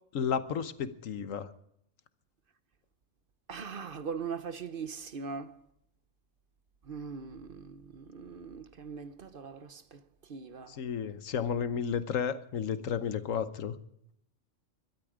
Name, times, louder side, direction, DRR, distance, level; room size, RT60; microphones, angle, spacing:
voice 1, 0.1-1.5 10.7-13.7, left 7 dB, 90° left, 1.4 m, -32 dB
voice 2, 3.5-5.6 6.9-10.0 10.3-10.8, right 5 dB, 50° right, 1.0 m, -41 dB
22.0 x 12.5 x 5.0 m
omnidirectional pair, 1.3 m